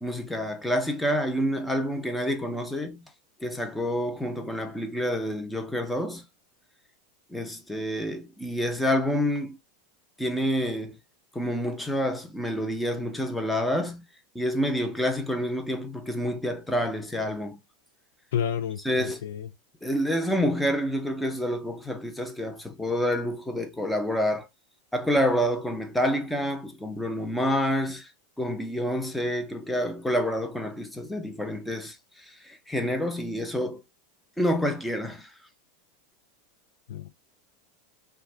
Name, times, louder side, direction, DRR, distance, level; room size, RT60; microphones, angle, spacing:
voice 1, 0.0-3.0 3.4-6.2 7.3-9.6 10.2-11.0 11.3-14.0 14.3-17.6 18.8-19.2 19.8-24.5 24.9-28.1 28.4-31.9 32.4-33.8 34.4-35.3, equal, 5° left, 0.7 m, -28 dB
voice 2, 18.3-19.5 36.9-37.1, left 8 dB, 75° left, 0.5 m, -30 dB
2.5 x 2.3 x 3.3 m
hypercardioid pair, 115°, 0 cm